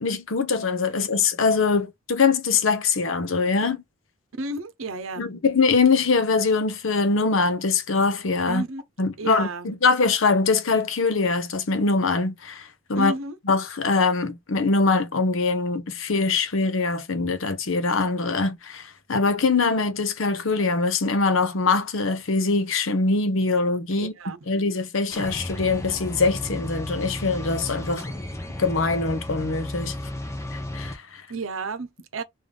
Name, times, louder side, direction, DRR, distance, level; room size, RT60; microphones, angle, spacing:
voice 1, 0.0-3.8 5.2-8.6 9.0-13.1 13.5-24.1 24.5-28.0 28.6-29.9 30.5-31.2, left 4 dB, 75° left, 0.7 m, -23 dB
voice 2, 4.4-5.2 8.5-8.8 9.2-9.7 12.9-13.4 23.9-24.4 31.3-32.2, right 3 dB, 80° right, 0.7 m, -32 dB
sound 1, 25.1-31.0, left 1 dB, 15° left, 0.7 m, -33 dB
3.5 x 2.5 x 3.7 m
head